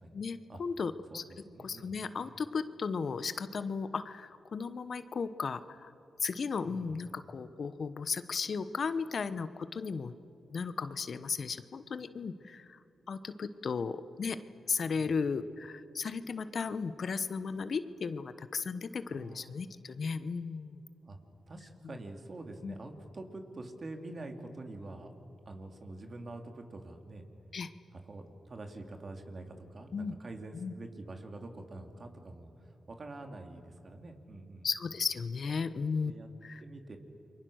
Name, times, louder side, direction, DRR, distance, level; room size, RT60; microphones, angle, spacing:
voice 1, 0.1-1.2 1.6-5.9 6.2-10.1 10.5-12.8 13.1-14.4 14.7-20.8 22.6-22.7 27.5-27.7 29.9-30.2 30.5-30.7 34.6-36.1 36.4-36.6, left 5 dB, 60° left, 13 dB, 1.0 m, -35 dB
voice 2, 1.1-2.0 6.6-7.0 14.9-15.1 19.1-19.5 21.0-21.2 21.5-25.2 25.4-27.2 27.9-34.7 35.4-35.5 36.0-36.3 36.6-37.0, right 2 dB, 50° right, 4 dB, 2.9 m, -46 dB
28.5 x 23.5 x 6.5 m, 2.7 s
cardioid pair, 55°, 0 cm